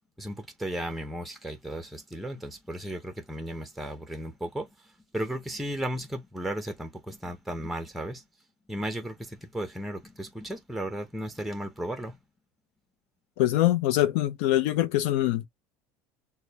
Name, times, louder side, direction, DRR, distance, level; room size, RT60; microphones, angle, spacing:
voice 1, 0.2-8.2 8.7-12.2, right 1 dB, ahead, 0.6 m, -35 dB
voice 2, 13.4-15.5, left 14 dB, 75° left, 0.5 m, -24 dB
6.4 x 2.1 x 2.8 m
cardioid pair, 140°, 7 cm